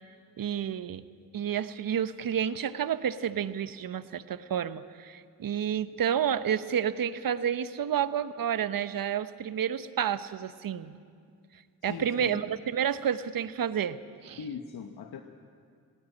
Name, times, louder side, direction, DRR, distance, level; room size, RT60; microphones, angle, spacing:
voice 1, 0.4-1.0 1.3-11.0 11.8-14.0 14.2-14.4, right 9 dB, 55° right, 13 dB, 1.0 m, -30 dB
voice 2, 11.9-12.4 14.4-15.2, left 6 dB, 60° left, 6 dB, 1.3 m, -39 dB
20.0 x 17.0 x 8.5 m, 2.2 s
supercardioid pair, 45°, 41 cm